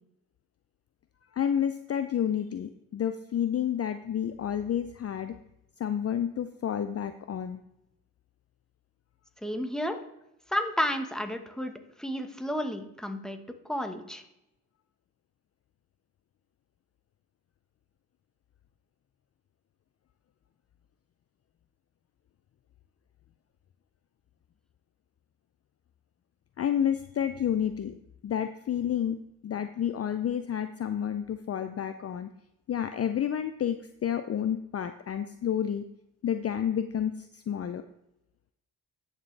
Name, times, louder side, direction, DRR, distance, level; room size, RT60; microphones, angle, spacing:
voice 1, 1.3-5.4 5.8-7.6 26.6-27.9 28.2-29.2 29.4-32.3 32.7-35.9 36.2-37.8, left 9 dB, 40° left, 9 dB, 0.5 m, -30 dB
voice 2, 9.4-10.0 10.5-11.7 12.0-13.4 13.7-14.2, equal, ahead, 5 dB, 1.3 m, -31 dB
10.5 x 6.6 x 3.4 m, 0.83 s
hypercardioid pair, 50°, 40 cm